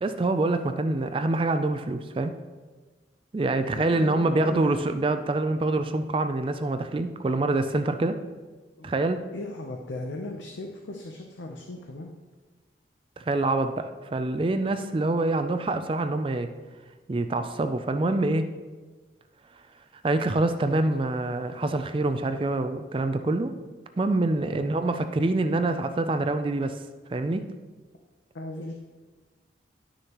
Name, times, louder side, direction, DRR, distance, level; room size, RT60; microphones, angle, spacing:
voice 1, 0.0-2.3 3.3-8.2 8.8-9.2 13.2-16.5 17.1-18.5 20.0-23.5 24.0-26.8 27.1-27.5, right 2 dB, 30° right, 9 dB, 0.3 m, -25 dB
voice 2, 3.6-4.9 8.8-8.9 9.3-12.1 24.5-24.7 28.3-28.7, left 2 dB, 90° left, 2 dB, 0.7 m, -37 dB
11.0 x 6.4 x 3.0 m, 1.3 s
head